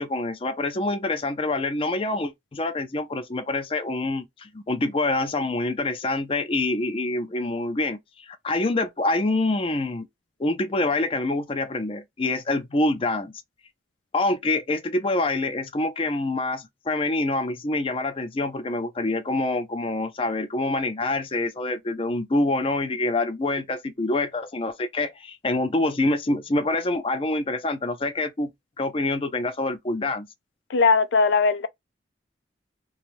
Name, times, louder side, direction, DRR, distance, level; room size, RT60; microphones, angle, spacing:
voice 1, 0.0-10.1 10.4-13.3 14.1-28.5 28.8-30.3, left 2 dB, 30° left, 0.5 m, -26 dB
voice 2, 30.7-31.7, left 4 dB, 85° left, 0.4 m, -19 dB
2.6 x 2.2 x 3.0 m
head